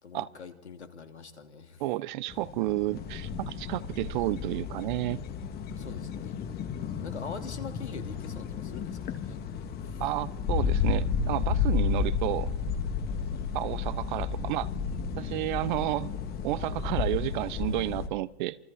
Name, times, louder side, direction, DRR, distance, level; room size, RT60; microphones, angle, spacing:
voice 1, 0.0-1.8 5.8-6.4 7.0-9.4 9.8-10.0, left 5 dB, 80° left, 7 dB, 3.0 m, -44 dB
voice 2, 1.8-5.2 10.0-12.5 13.5-14.7 15.2-16.1 16.4-18.6, right 17 dB, 45° right, 20 dB, 1.0 m, -31 dB
sound 1, 2.3-18.1, left 6 dB, 30° left, 2.7 m, -32 dB
27.5 x 27.5 x 4.4 m, 1.0 s
hypercardioid pair, 115°, 33 cm